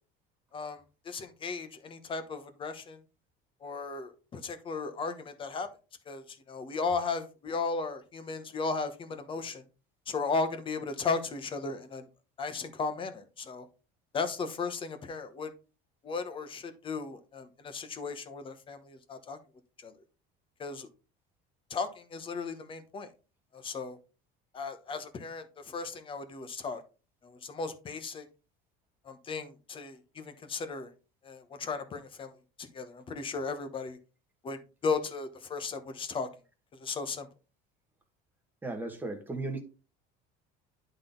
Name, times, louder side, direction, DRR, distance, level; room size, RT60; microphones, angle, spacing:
voice 1, 1.0-3.0 3.6-5.7 6.1-9.6 10.1-12.1 12.4-13.7 14.1-15.5 16.0-19.4 19.8-19.9 20.6-20.9 21.7-23.1 23.5-24.0 24.5-26.8 27.2-28.2 29.0-30.9 31.2-32.3 32.6-34.0 34.4-36.3 36.7-37.3, left 4 dB, 25° left, 1.1 m, -36 dB
voice 2, 38.6-39.6, right 2 dB, 10° right, 1.4 m, -35 dB
11.0 x 4.0 x 3.9 m
cardioid pair, 165°, 20 cm